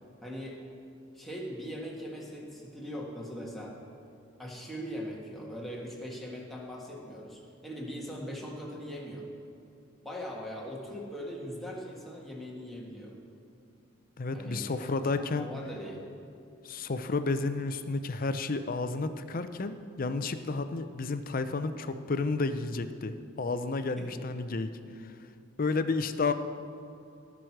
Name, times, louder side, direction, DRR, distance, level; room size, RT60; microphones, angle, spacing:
voice 1, 0.2-0.6 1.1-3.7 4.4-9.3 10.0-13.1 14.3-14.9 15.1-16.0 24.0-24.2, equal, ahead, -3 dB, 1.6 m, -40 dB
voice 2, 14.2-15.5 16.6-24.7 25.0-25.1 25.6-26.3, left 3 dB, 45° left, 10 dB, 0.5 m, -31 dB
18.0 x 6.2 x 4.6 m, 2.6 s
head